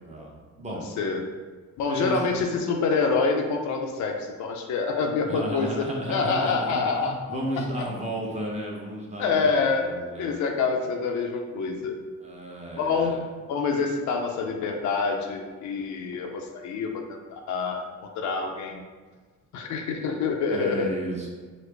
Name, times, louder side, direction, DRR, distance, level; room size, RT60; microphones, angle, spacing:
voice 1, 0.0-0.8 1.8-2.4 5.2-9.6 9.8-10.4 12.2-13.2 20.5-21.3, right 1 dB, 20° right, -3 dB, 0.8 m, -33 dB
voice 2, 0.7-1.2 1.8-7.2 9.2-12.0 12.7-13.1 13.5-17.8 18.2-18.8 19.5-20.9, left 4 dB, 70° left, 2 dB, 0.5 m, -26 dB
3.9 x 2.0 x 3.2 m, 1.4 s
cardioid pair, 90°, 30 cm